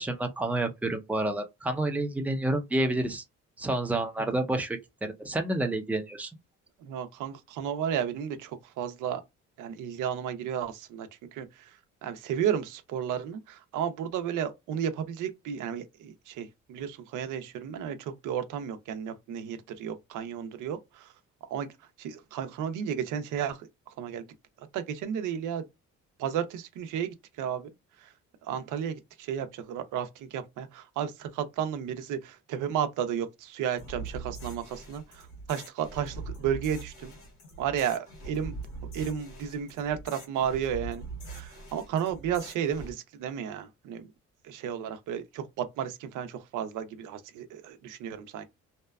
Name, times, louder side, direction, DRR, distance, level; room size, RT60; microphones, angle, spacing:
voice 1, 0.0-3.2 3.6-6.3, right 2 dB, 5° right, 0.5 m, -29 dB
voice 2, 6.8-9.2 9.6-11.5 12.0-21.1 21.5-21.7 22.0-23.7 24.0-24.2 24.7-25.6 26.2-27.7 28.5-37.1 37.6-38.5 38.8-44.1 44.4-48.4, right 8 dB, 85° right, 0.5 m, -33 dB
sound 1, 33.8-42.9, right 3 dB, 85° left, 1.4 m, -42 dB
2.7 x 2.2 x 2.2 m
cardioid pair, 90°, 30 cm